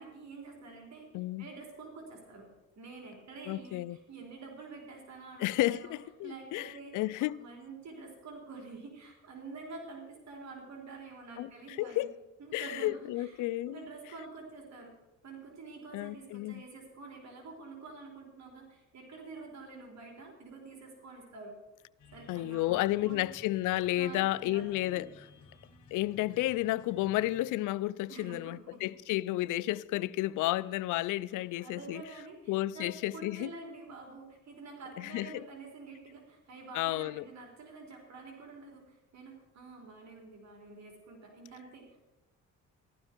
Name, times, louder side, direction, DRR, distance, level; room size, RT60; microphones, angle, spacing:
voice 1, 0.0-1.1 1.4-2.5 2.8-6.0 6.2-7.1 7.3-12.1 12.4-14.9 15.2-21.5 22.1-23.3 23.9-25.0 28.1-28.9 31.3-42.0, right 3 dB, 65° right, 3.8 m, -48 dB
voice 2, 1.1-1.4 3.5-4.0 5.4-7.4 11.4-11.5 11.8-12.1 12.5-13.8 15.9-16.6 22.3-25.1 25.9-32.0 32.5-33.5 35.0-35.4 36.7-37.3, left 16 dB, 85° left, 0.5 m, -32 dB
sound 1, 22.0-27.5, left 3 dB, 65° left, 2.2 m, -57 dB
14.5 x 12.5 x 4.5 m
cardioid pair, 90°, 30 cm